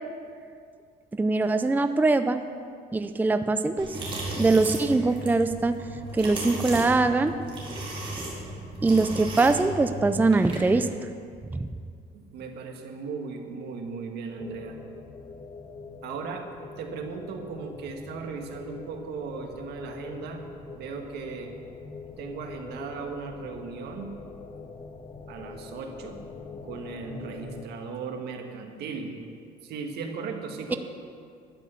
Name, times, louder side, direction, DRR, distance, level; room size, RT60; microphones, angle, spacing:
voice 1, 1.1-2.4 2.9-4.0 4.4-5.8 6.1-7.3 8.8-10.9 30.7-30.8, right 3 dB, 10° right, 10 dB, 0.5 m, -22 dB
sound 1, 3.8-10.8, right 2 dB, 30° right, 4.2 m, -35 dB
voice 2, 12.1-14.8 16.0-16.5 16.8-20.4 20.7-21.5 22.2-24.1 25.3-26.2 26.6-29.1 29.6-30.8, right 5 dB, 75° right, 4 dB, 1.8 m, -37 dB
sound 2, 14.4-27.7, left 4 dB, 25° left, 1.0 m, -43 dB
12.5 x 10.5 x 7.0 m, 2.2 s
cardioid pair, 110°, 17 cm